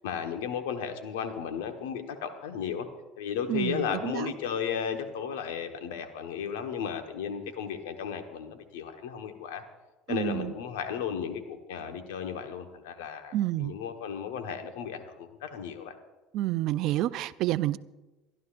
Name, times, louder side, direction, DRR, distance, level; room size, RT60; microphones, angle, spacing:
voice 1, 0.0-2.9 3.2-9.6 10.1-15.9, left 7 dB, 85° left, 6 dB, 1.3 m, -34 dB
voice 2, 3.5-4.3 10.1-10.5 13.3-13.7 16.3-17.8, right 14 dB, 65° right, 16 dB, 0.5 m, -29 dB
27.0 x 12.0 x 2.6 m, 1.1 s
hypercardioid pair, 85°, 0 cm